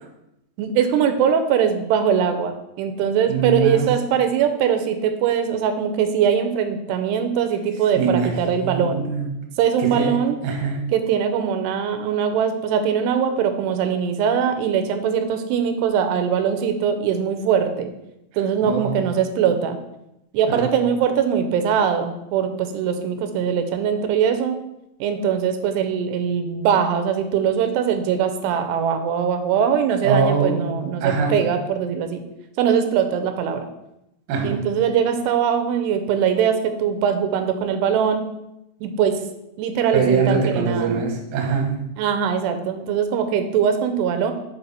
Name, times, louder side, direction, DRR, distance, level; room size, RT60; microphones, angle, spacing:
voice 1, 0.6-9.0 9.6-10.4 10.9-17.9 18.4-19.8 20.3-24.6 25.0-32.2 32.6-33.7 34.4-38.2 38.8-39.2 39.6-41.1 42.0-44.3, right 7 dB, 90° right, 7 dB, 2.8 m, -21 dB
voice 2, 3.3-3.9 8.0-8.3 8.6-9.3 9.9-10.2 10.4-10.8 18.7-19.0 20.5-20.7 30.0-31.4 34.3-34.6 39.9-41.8, right 5 dB, 65° right, 1 dB, 2.1 m, -22 dB
5.7 x 5.4 x 4.1 m, 0.86 s
omnidirectional pair, 4.7 m